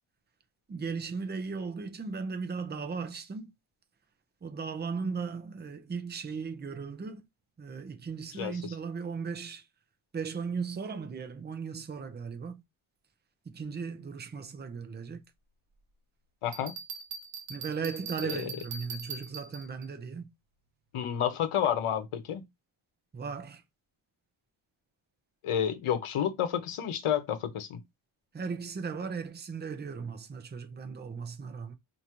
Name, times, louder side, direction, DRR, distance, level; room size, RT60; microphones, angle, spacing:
voice 1, 0.7-3.5 4.4-7.2 7.6-9.6 10.1-12.6 13.5-15.2 17.5-20.3 23.1-23.6 28.3-31.7, right 5 dB, 20° right, 0.4 m, -37 dB
voice 2, 8.4-8.7 16.4-16.7 18.2-18.5 20.9-22.4 25.4-27.8, left 9 dB, 80° left, 0.8 m, -30 dB
Bell, 16.5-19.9, right 5 dB, 85° right, 0.9 m, -41 dB
4.7 x 2.7 x 2.9 m
wide cardioid pair, 170°, 49 cm